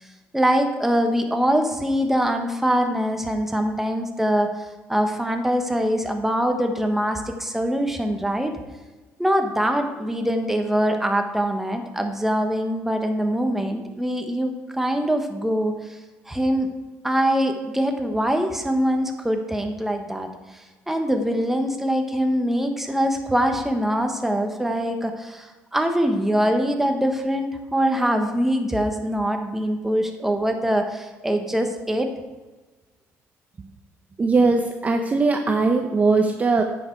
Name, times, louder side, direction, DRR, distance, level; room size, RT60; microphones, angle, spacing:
voice 1, 0.3-4.5 4.9-8.5 9.2-15.7 16.3-16.7 17.0-20.3 20.9-32.1, equal, 5° right, 5 dB, 1.2 m, -23 dB
voice 2, 34.2-36.6, right 3 dB, 25° right, 5 dB, 0.7 m, -20 dB
9.6 x 6.7 x 4.6 m, 1.2 s
cardioid pair, 100°, 5 cm